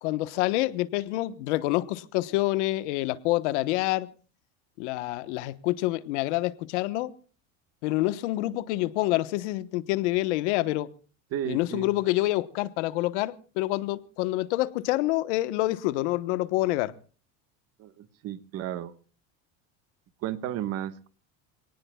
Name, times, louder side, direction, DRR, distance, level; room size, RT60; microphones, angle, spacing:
voice 1, 0.0-4.1 4.8-7.1 7.8-10.9 11.4-16.9, left 18 dB, 90° left, 14 dB, 1.2 m, -27 dB
voice 2, 11.3-11.9 17.8-18.9 20.2-21.1, right 11 dB, 45° right, 11 dB, 1.4 m, -33 dB
27.5 x 18.5 x 2.3 m, 0.38 s
cardioid pair, 150°, 34 cm